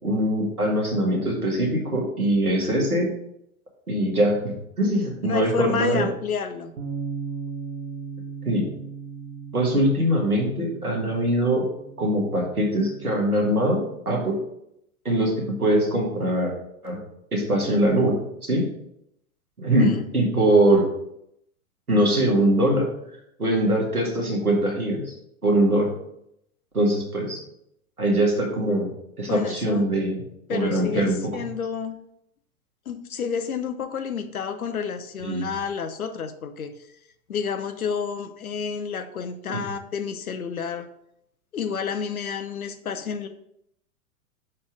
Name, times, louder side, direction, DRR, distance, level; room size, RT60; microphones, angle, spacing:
voice 1, 0.0-3.1 3.9-6.0 8.5-8.7 9.5-11.6 12.0-14.4 15.1-16.5 16.8-17.0 17.3-18.7 19.6-20.8 21.9-22.9 23.4-25.1 25.4-25.9 26.7-27.4 28.0-28.9 29.2-30.2 30.5-31.3 35.2-35.5 39.5-39.6, right 1 dB, 85° right, -1 dB, 1.8 m, -22 dB
voice 2, 5.2-6.7 19.8-20.1 29.3-29.9 30.5-32.0 32.9-36.7 37.3-40.9 41.5-43.3, left 6 dB, 75° left, 8 dB, 0.7 m, -30 dB
Bass guitar, 6.8-13.0, right 5 dB, 45° right, 1.4 m, -37 dB
6.0 x 4.3 x 5.1 m, 0.76 s
figure-of-eight pair, 100°, 43 cm